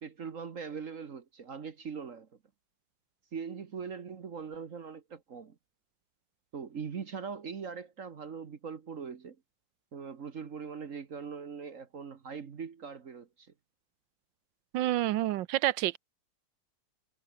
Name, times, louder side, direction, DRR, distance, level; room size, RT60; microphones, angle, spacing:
voice 1, 0.0-2.3 3.3-5.5 6.5-9.4 9.9-13.5, right 6 dB, 50° right, 1.5 m, -41 dB
voice 2, 14.7-16.0, right 14 dB, 90° right, 1.4 m, -28 dB
omnidirectional pair, 1.9 m